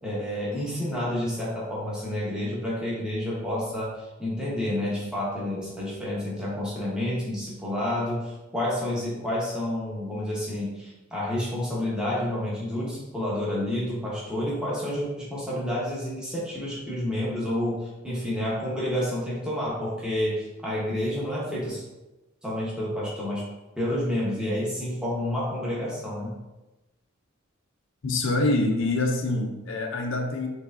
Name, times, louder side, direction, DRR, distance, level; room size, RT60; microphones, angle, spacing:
voice 1, 0.0-21.8 22.4-23.4 23.8-26.3, left 1 dB, 5° right, -7 dB, 1.1 m, -29 dB
voice 2, 28.0-30.5, left 2 dB, 65° left, 3 dB, 0.6 m, -25 dB
4.6 x 3.3 x 2.6 m, 1.0 s
head